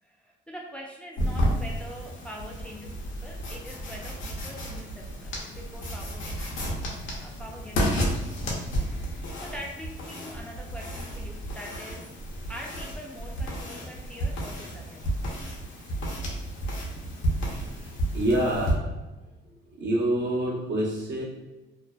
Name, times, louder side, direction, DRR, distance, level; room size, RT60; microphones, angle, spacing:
voice 1, 0.0-6.9 7.2-8.2 8.8-12.1 12.5-15.1, equal, 5° left, -1 dB, 0.3 m, -44 dB
sound 1, 1.2-18.7, equal, 80° left, 0.6 m, -32 dB
voice 2, 17.5-18.9 19.7-21.2, right 1 dB, 65° right, -2 dB, 0.8 m, -27 dB
2.5 x 2.2 x 2.2 m, 1.1 s
cardioid pair, 90°, 20 cm